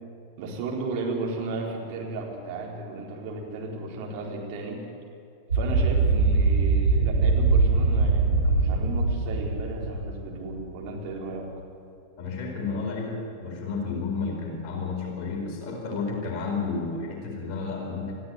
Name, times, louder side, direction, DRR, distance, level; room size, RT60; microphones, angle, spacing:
voice 1, 0.4-4.8 5.5-11.5, right 3 dB, 45° right, -1 dB, 4.5 m, -34 dB
sound 1, 5.5-10.6, right 3 dB, 80° right, 6.0 m, -22 dB
voice 2, 12.2-18.1, left 4 dB, 40° left, 0 dB, 4.4 m, -31 dB
21.0 x 14.0 x 9.7 m, 2.5 s
figure-of-eight pair, 90°, 0 cm